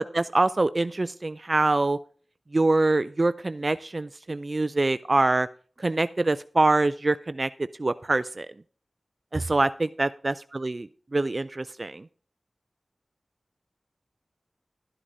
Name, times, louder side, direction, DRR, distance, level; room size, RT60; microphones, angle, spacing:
voice 1, 0.1-2.0 2.5-5.5 5.8-7.5 7.8-8.5 9.3-10.9 11.1-12.0, right 2 dB, 45° right, 14 dB, 0.3 m, -24 dB
12.0 x 9.8 x 2.6 m, 0.43 s
cardioid pair, 45°, 0 cm